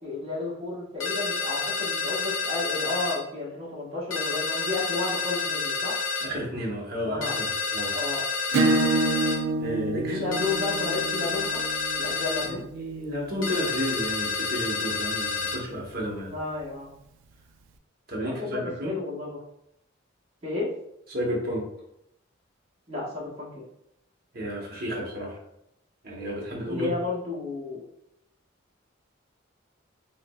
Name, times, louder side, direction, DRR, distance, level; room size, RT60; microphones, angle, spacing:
voice 1, 0.0-5.9 7.0-7.4 7.9-8.3 10.1-11.6 12.0-12.7 16.3-16.9 18.2-19.4 20.4-20.7 22.9-23.6 26.7-27.8, left 3 dB, 30° right, -6 dB, 1.2 m, -32 dB
sound 1, 1.0-3.2 4.1-6.3 7.2-9.4 10.3-12.5 13.4-15.6, left 4 dB, 85° left, 0.9 m, -29 dB
voice 2, 6.2-7.9 9.6-10.2 12.0-16.3 18.1-19.0 21.1-21.7 24.3-25.4 26.0-26.9, equal, 50° right, -2 dB, 1.0 m, -32 dB
Acoustic guitar / Strum, 8.5-13.8, right 2 dB, 75° right, 0.3 m, -28 dB
5.7 x 2.0 x 2.3 m, 0.78 s
head